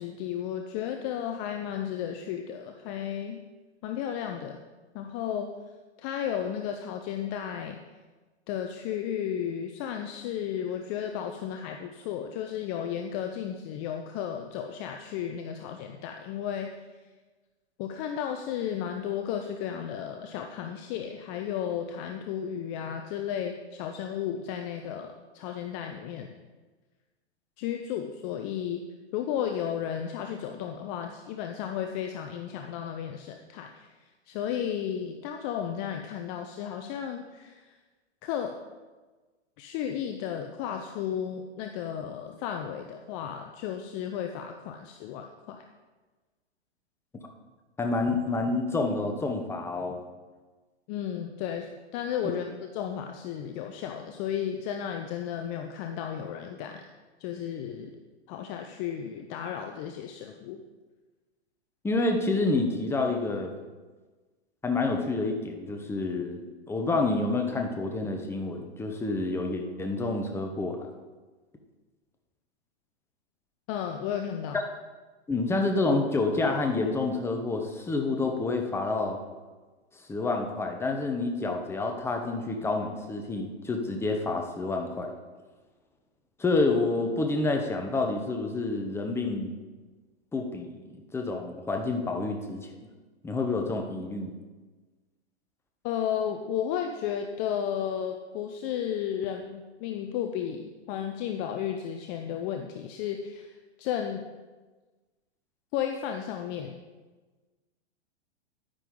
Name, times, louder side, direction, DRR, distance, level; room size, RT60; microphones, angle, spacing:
voice 1, 0.0-3.4 3.8-4.6 4.9-5.5 6.0-7.8 8.5-16.7 17.8-26.3 27.6-28.8 29.1-33.9 34.3-37.8 38.2-38.5 39.6-45.6 50.9-51.7 51.9-56.9 57.2-57.9 58.3-60.6 73.7-74.6 95.8-104.3 105.7-106.7, left 9 dB, 30° left, 5 dB, 0.6 m, -33 dB
voice 2, 47.8-50.0 61.8-63.5 64.6-70.8 74.5-74.6 75.3-79.2 80.1-85.1 86.4-89.5 90.3-92.7 93.2-94.3, left 3 dB, 5° left, 3 dB, 1.0 m, -28 dB
10.0 x 9.9 x 3.9 m, 1.3 s
hypercardioid pair, 130°, 34 cm